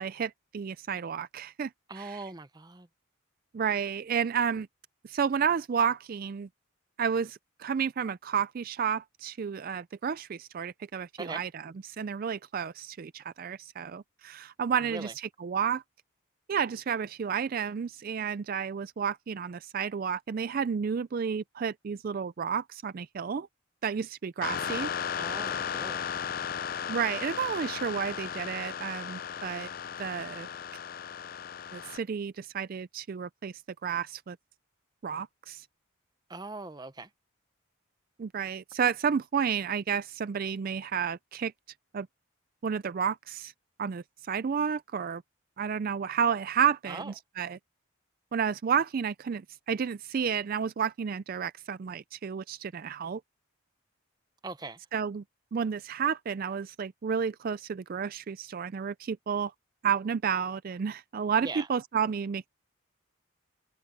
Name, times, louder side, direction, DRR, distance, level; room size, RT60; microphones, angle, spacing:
voice 1, 0.0-1.7 2.0-2.2 3.5-4.7 5.0-6.5 7.0-15.8 16.5-23.5 23.8-24.9 26.9-29.7 30.0-30.5 31.7-34.4 35.0-35.7 38.2-41.5 41.9-42.1 42.6-43.5 43.8-45.2 45.6-47.6 48.3-53.2 54.9-55.2 55.5-59.5 59.8-62.5, right 7 dB, 40° right, 0.3 m, -31 dB
voice 2, 1.9-2.9 11.2-11.4 14.8-15.1 25.2-26.1 36.3-37.1 46.9-47.1 54.4-54.8 61.4-61.7, right 3 dB, 20° right, 0.8 m, -40 dB
sound 1, 24.4-32.0, left 8 dB, 40° left, 0.4 m, -35 dB
head